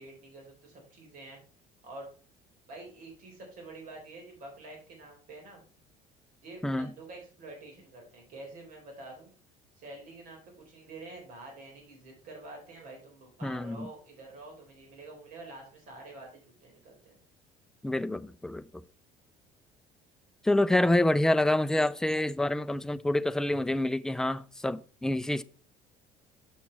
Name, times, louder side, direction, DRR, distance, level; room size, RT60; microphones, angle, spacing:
voice 1, 0.0-1.4 1.8-2.1 2.7-5.6 6.4-9.3 9.8-17.2, right 2 dB, 60° right, 3.8 m, -47 dB
voice 2, 13.4-13.9 17.8-18.6 20.4-25.4, left 1 dB, 5° left, 0.4 m, -27 dB
7.3 x 6.0 x 4.4 m
cardioid pair, 110°, 16 cm